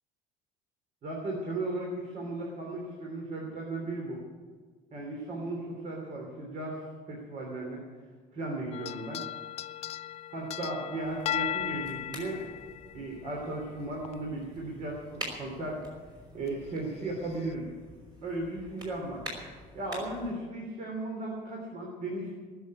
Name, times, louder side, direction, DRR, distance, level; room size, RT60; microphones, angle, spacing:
voice 1, 1.0-4.2 4.9-6.8 7.1-7.8 8.3-9.2 10.3-12.4 12.9-15.8 16.3-17.6 18.2-19.2 19.7-22.3, right 2 dB, 45° right, -1 dB, 3.3 m, -36 dB
sound 1, 8.7-13.6 14.0-14.1 15.7-15.8 16.5-16.6 17.3-17.5, left 12 dB, 35° left, 0.4 m, -37 dB
sound 2, 11.0-20.3, right 1 dB, 25° right, 4.7 m, -47 dB
19.0 x 7.2 x 9.6 m, 1.5 s
cardioid pair, 165°, 18 cm